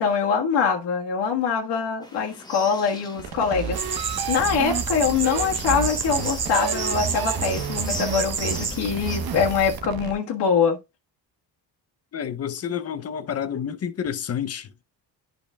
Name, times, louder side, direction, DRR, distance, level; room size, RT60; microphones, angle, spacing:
voice 1, 0.0-10.8, left 6 dB, 70° left, 1.6 m, -24 dB
sound 1, 2.0-9.2, left 1 dB, 10° left, 1.7 m, -41 dB
sound 2, 3.2-10.1, right 7 dB, 60° right, 1.1 m, -31 dB
sound 3, 3.7-9.8, right 5 dB, 35° right, 1.8 m, -30 dB
voice 2, 12.1-14.7, left 8 dB, 35° left, 0.6 m, -29 dB
11.0 x 5.2 x 2.3 m
wide cardioid pair, 165°, 42 cm